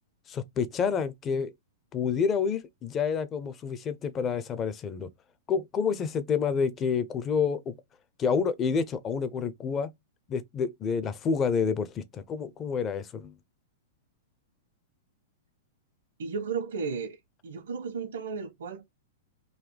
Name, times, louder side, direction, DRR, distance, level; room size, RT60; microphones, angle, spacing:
voice 1, 0.3-1.5 1.9-5.1 5.5-7.7 8.2-9.9 10.3-13.3, left 6 dB, 20° left, 0.6 m, -28 dB
voice 2, 16.2-17.2 17.4-18.9, right 5 dB, 90° right, 1.4 m, -34 dB
3.9 x 2.6 x 3.2 m
hypercardioid pair, 155°, 0 cm